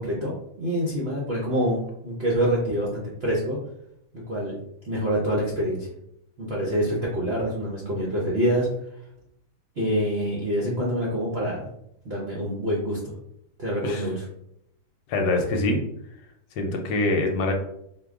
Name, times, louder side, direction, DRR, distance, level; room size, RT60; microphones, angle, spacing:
voice 1, 0.0-3.6 4.3-4.6 4.8-5.9 6.4-8.7 9.8-11.6 12.0-13.1 13.6-14.2, equal, 55° right, -5 dB, 0.7 m, -26 dB
voice 2, 15.1-15.8 16.6-17.5, left 2 dB, 75° left, 3 dB, 1.3 m, -24 dB
4.6 x 2.3 x 3.6 m, 0.77 s
omnidirectional pair, 2.1 m